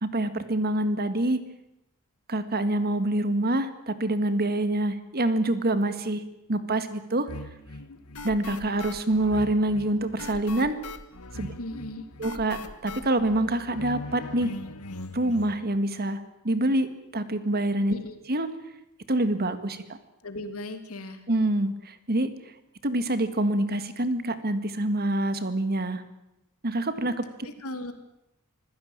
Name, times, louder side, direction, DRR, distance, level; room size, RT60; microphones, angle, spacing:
voice 1, 0.0-1.4 2.3-6.2 6.5-7.3 8.2-10.8 11.4-11.5 12.2-14.5 15.1-17.9 18.3-18.5 19.1-20.0 21.3-22.3 22.8-26.0 26.6-27.5, right 1 dB, 45° right, 11 dB, 1.9 m, -26 dB
sound 1, 7.3-15.5, left 2 dB, 90° left, 1.8 m, -40 dB
voice 2, 11.6-12.1 17.9-18.1 20.2-21.2 27.4-27.9, left 1 dB, 70° left, 8 dB, 2.9 m, -37 dB
25.5 x 16.5 x 8.9 m, 0.88 s
head